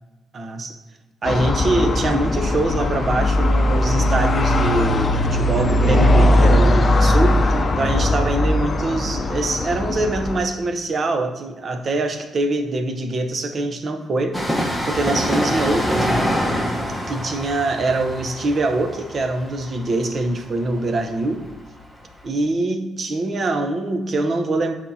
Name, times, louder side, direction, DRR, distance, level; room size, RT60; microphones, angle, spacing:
voice 1, 0.3-0.8 1.2-7.5 7.8-14.4 14.9-16.3 17.1-21.5 22.2-24.7, right 2 dB, 45° right, 7 dB, 0.7 m, -23 dB
sound 1, 1.2-10.4, left 1 dB, 35° left, 0.6 m, -19 dB
Train, 14.3-21.8 22.0-22.1, equal, 5° right, 1.1 m, -25 dB
8.3 x 4.3 x 2.8 m, 1.1 s
cardioid pair, 90°, 0 cm